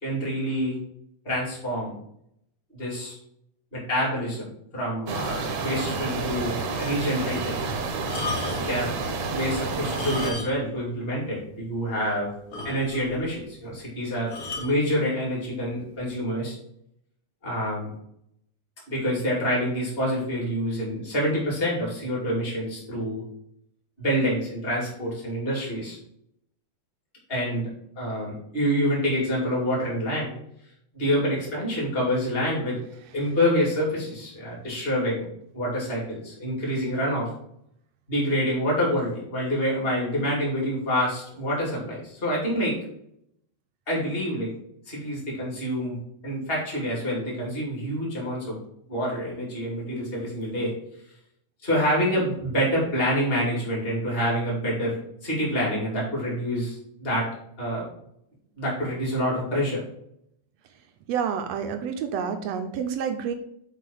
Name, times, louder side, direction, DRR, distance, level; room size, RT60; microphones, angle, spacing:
voice 1, 0.0-0.8 1.2-1.9 2.8-3.2 3.7-4.5 4.7-7.6 8.4-8.9 9.3-12.3 12.6-14.3 14.6-16.6 17.4-17.9 18.9-23.2 24.0-26.0 27.3-30.3 30.9-32.8 33.1-35.3 35.5-37.3 38.1-42.8 43.9-44.5 44.9-46.0 46.2-48.6 48.9-50.7 51.6-57.3 57.6-57.8 58.6-59.8, equal, 20° left, -4 dB, 2.8 m, -27 dB
sound 1, 5.1-10.3, right 4 dB, 60° right, 1.4 m, -29 dB
sound 2, 8.0-8.8 9.8-10.8 11.0-11.2 11.7-11.8 12.0-12.1 12.5-13.2 14.3-14.8 15.6-15.9, left 3 dB, 60° left, 0.9 m, -34 dB
voice 2, 61.1-63.3, right 7 dB, 80° right, 7 dB, 1.6 m, -28 dB
6.6 x 4.6 x 5.4 m, 0.73 s
omnidirectional pair, 3.4 m